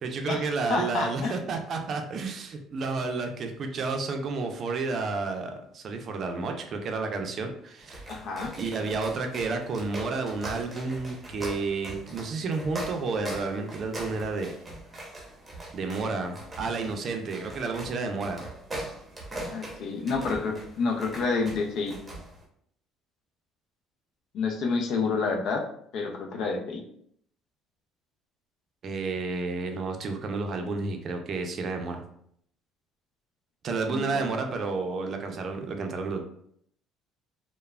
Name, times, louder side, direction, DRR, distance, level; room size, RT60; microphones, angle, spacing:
voice 1, 0.0-8.0 8.6-14.5 15.7-18.4 28.8-32.0 33.6-36.2, right 4 dB, 50° right, 5 dB, 0.4 m, -31 dB
voice 2, 0.7-1.3 8.1-8.5 19.5-21.9 24.3-25.6 25.9-26.8 33.9-34.2, left 4 dB, 65° left, 3 dB, 0.5 m, -29 dB
sound 1, 7.8-22.4, right 1 dB, 20° right, 0.8 m, -41 dB
3.1 x 2.1 x 2.3 m, 0.69 s
supercardioid pair, 95°, 0 cm